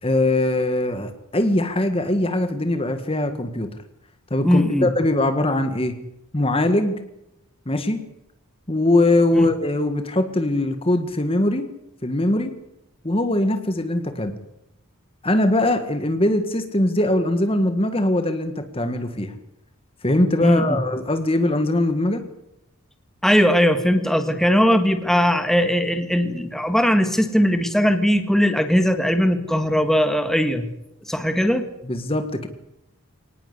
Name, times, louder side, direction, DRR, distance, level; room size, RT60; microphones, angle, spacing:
voice 1, 0.0-3.8 4.3-6.0 6.3-7.0 7.6-8.0 8.7-11.7 12.0-12.5 13.0-14.4 15.2-19.3 20.0-22.2 31.8-32.5, left 1 dB, 25° left, 8 dB, 1.6 m, -21 dB
voice 2, 4.4-4.9 9.3-9.5 20.4-20.8 23.2-30.7 31.1-31.6, equal, ahead, 7 dB, 1.9 m, -19 dB
24.5 x 19.0 x 8.2 m, 0.86 s
head